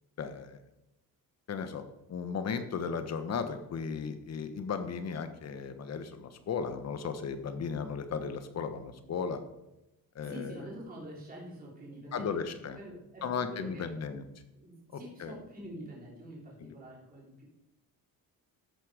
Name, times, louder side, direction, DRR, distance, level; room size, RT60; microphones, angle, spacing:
voice 1, 0.2-0.6 1.5-9.4 10.1-10.6 12.1-12.8 13.2-14.2 15.2-15.3 16.6-16.7, left 6 dB, 45° left, 9 dB, 1.3 m, -36 dB
voice 2, 10.2-13.9 14.5-17.4, right 1 dB, 25° right, -5 dB, 3.7 m, -46 dB
13.5 x 8.7 x 5.1 m, 0.92 s
cardioid pair, 170°, 36 cm